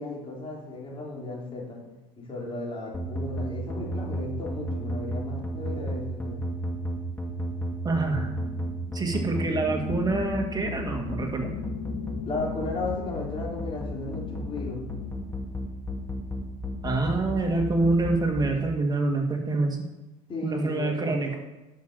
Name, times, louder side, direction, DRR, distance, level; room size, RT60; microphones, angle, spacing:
voice 1, 0.0-1.8 2.2-6.4 12.2-14.8 20.3-21.4, left 2 dB, 30° left, -2 dB, 3.8 m, -35 dB
sound 1, 2.9-18.5, equal, 15° left, 1.9 m, -32 dB
voice 2, 7.8-8.3 8.9-11.6 16.8-19.8 20.4-21.4, right 3 dB, 25° right, 2 dB, 2.0 m, -26 dB
sound 2, 8.0-15.8, left 5 dB, 70° left, 4.1 m, -40 dB
10.5 x 6.5 x 6.4 m, 1.0 s
supercardioid pair, 90°, 17 cm